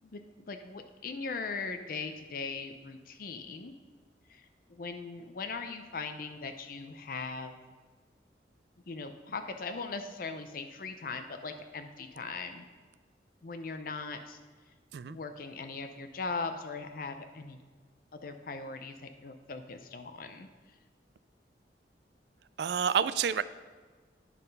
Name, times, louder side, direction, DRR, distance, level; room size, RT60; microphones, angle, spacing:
voice 1, 0.5-3.7 4.3-7.6 8.9-12.7 13.4-14.4 15.1-17.6 18.1-20.5, left 4 dB, 55° left, 8 dB, 0.6 m, -39 dB
voice 2, 22.6-23.4, right 7 dB, 70° right, 15 dB, 0.3 m, -28 dB
9.9 x 5.8 x 5.3 m, 1.4 s
head